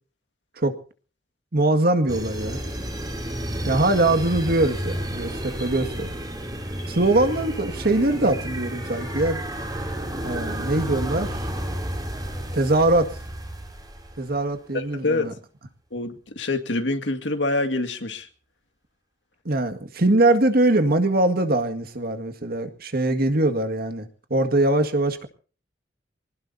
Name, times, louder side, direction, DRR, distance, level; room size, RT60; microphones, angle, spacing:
voice 1, 1.5-2.6 3.7-6.1 6.9-9.4 10.2-11.5 12.5-13.2 14.2-15.3 19.5-25.3, right 2 dB, 55° right, 8 dB, 2.0 m, -22 dB
sound 1, 2.1-14.4, right 1 dB, 20° right, 3.1 m, -31 dB
voice 2, 14.7-15.3 15.9-18.3, left 2 dB, 75° left, 5 dB, 2.1 m, -26 dB
26.0 x 19.0 x 2.8 m, 0.40 s
head